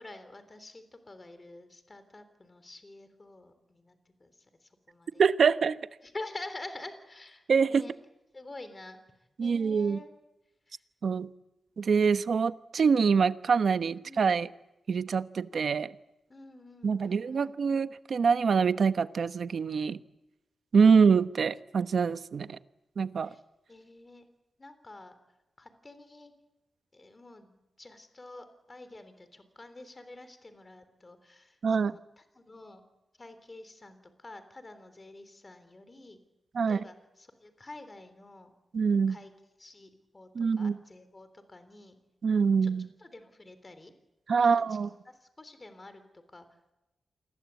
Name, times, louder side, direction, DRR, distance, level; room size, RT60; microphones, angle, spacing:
voice 1, 0.0-5.5 6.0-7.9 8.3-10.1 10.7-10.8 13.8-14.4 16.3-17.6 20.8-21.0 23.2-23.4 23.7-24.3 24.6-25.1 25.6-26.3 26.9-32.8 33.2-36.2 36.7-38.5 39.1-39.3 39.6-40.3 40.6-42.0 42.6-42.7 43.0-43.9 44.4-44.8 45.1-46.7, left 2 dB, 25° left, 10 dB, 3.5 m, -48 dB
voice 2, 5.2-5.8 7.5-7.8 9.4-10.0 11.0-11.3 11.8-14.5 14.9-15.9 16.8-20.0 20.7-22.6 23.0-23.3 31.6-32.0 36.5-36.8 38.7-39.2 40.3-40.8 42.2-42.9 44.3-44.9, right 5 dB, 60° right, 12 dB, 1.1 m, -25 dB
28.5 x 22.0 x 8.4 m, 0.97 s
wide cardioid pair, 115°, 0 cm